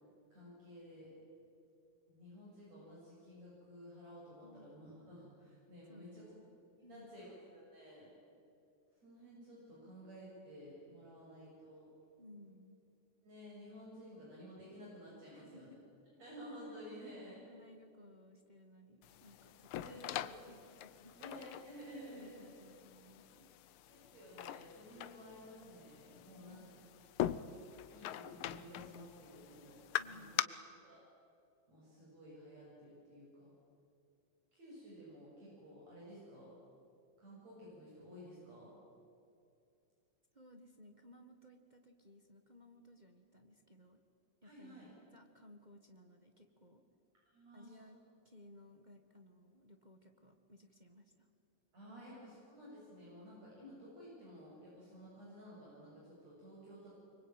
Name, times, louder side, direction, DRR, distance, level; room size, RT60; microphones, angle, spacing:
voice 1, 0.3-1.1 2.1-6.2 6.9-8.1 9.0-11.9 13.2-15.7 16.2-17.4 19.7-20.2 21.2-22.4 23.9-26.6 27.9-30.2 30.8-31.0 31.7-33.5 34.5-36.6 37.2-38.7 44.4-44.9 47.3-47.8 51.7-52.1 52.5-56.9, equal, 65° right, -6 dB, 8.1 m, -53 dB
voice 2, 4.4-4.8 5.9-6.6 6.8-7.2 12.2-12.8 15.3-15.8 16.7-21.2 22.1-23.5 26.3-26.7 30.0-30.6 40.3-44.0 44.4-46.8 47.5-51.3 51.9-52.0, left 1 dB, 25° right, 4 dB, 1.0 m, -60 dB
sound 1, 19.0-30.4, left 12 dB, 80° left, 1.2 m, -43 dB
25.5 x 24.0 x 9.2 m, 2.6 s
omnidirectional pair, 3.3 m